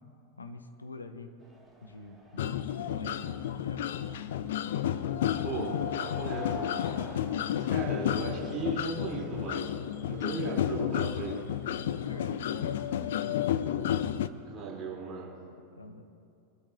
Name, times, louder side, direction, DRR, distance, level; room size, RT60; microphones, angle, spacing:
voice 1, 0.4-1.3 1.8-3.3 3.5-3.9 11.8-12.6 13.0-13.4 15.8-16.1, left 3 dB, 80° left, 7 dB, 0.9 m, -45 dB
sound 1, 1.4-13.6, right 1 dB, 5° left, 2.5 m, -52 dB
sound 2, 2.4-14.3, left 10 dB, 55° left, 0.4 m, -31 dB
voice 2, 5.4-6.8 7.5-9.7 10.1-11.4 14.4-15.3, right 4 dB, 25° right, -5 dB, 4.0 m, -37 dB
23.5 x 12.5 x 2.9 m, 2.5 s
figure-of-eight pair, 90°, 0 cm